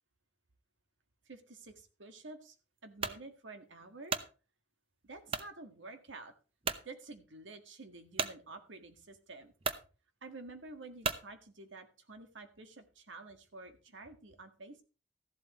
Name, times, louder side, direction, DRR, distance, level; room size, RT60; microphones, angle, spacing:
voice 1, 1.3-2.6 2.8-4.2 5.0-6.3 6.8-9.5 10.2-14.8, right 3 dB, 85° right, 7 dB, 1.7 m, -50 dB
sound 1, 3.0-3.2 3.8-4.3 5.3-5.5 6.1-6.2 6.6-6.9 8.2-8.4 9.2-9.3 9.6-9.9 11.0-11.3, right 5 dB, 30° right, 0.7 m, -35 dB
14.0 x 11.5 x 3.1 m, 0.34 s
head